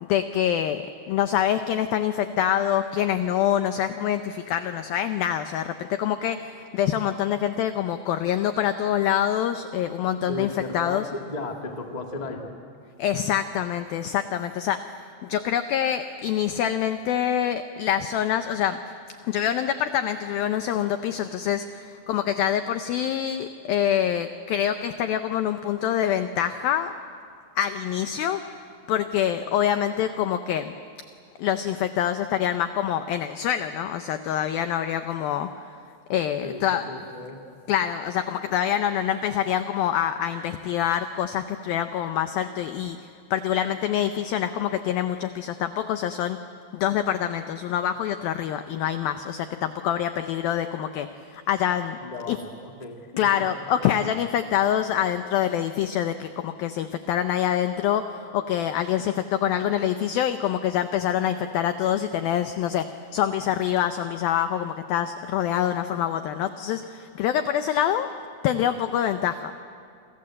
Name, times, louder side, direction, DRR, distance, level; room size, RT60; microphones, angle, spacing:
voice 1, 0.0-11.1 13.0-14.8 15.3-18.8 19.2-26.9 27.6-28.6 28.9-30.7 31.4-35.5 36.1-36.8 37.7-46.4 46.7-52.0 52.3-52.4 53.2-68.1 68.4-69.5, left 10 dB, 90° left, 9 dB, 2.0 m, -25 dB
voice 2, 10.2-12.5 36.4-37.4 52.0-53.5, left 2 dB, 30° left, 2 dB, 0.7 m, -35 dB
28.5 x 27.0 x 7.7 m, 2.3 s
omnidirectional pair, 5.3 m